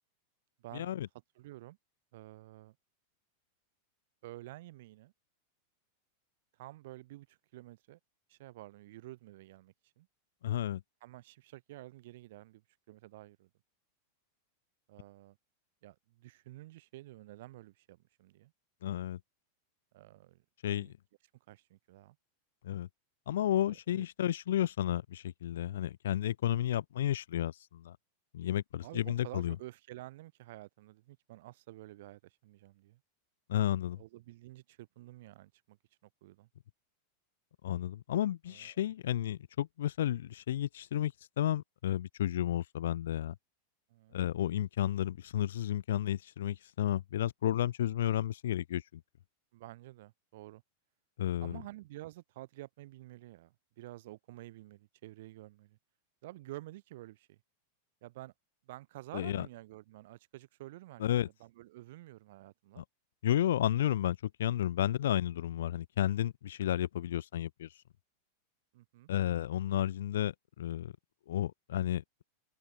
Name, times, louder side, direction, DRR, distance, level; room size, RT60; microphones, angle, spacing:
voice 1, 0.7-1.1 10.4-10.8 18.8-19.2 20.6-20.9 22.6-22.9 23.3-28.0 28.3-29.5 33.5-34.0 37.6-43.3 44.1-49.0 51.2-51.6 59.1-59.5 61.0-61.3 62.8-62.9 63.2-67.7 69.1-70.9 71.3-72.2, left 11 dB, 60° left, 1.7 m, -32 dB
voice 2, 1.4-1.8 2.1-2.8 4.2-5.1 6.6-8.0 8.3-10.1 11.0-12.6 12.9-13.5 14.9-15.4 15.8-18.5 19.9-20.4 20.7-20.9 21.5-22.2 23.7-24.1 28.8-33.0 34.0-36.5 38.5-38.8 43.9-44.2 49.5-50.6 51.4-55.8 56.2-57.4 58.0-58.3 58.7-61.0 61.4-62.8 68.7-69.1, right 17 dB, 55° right, 3.8 m, -50 dB
figure-of-eight pair, 90°, 0 cm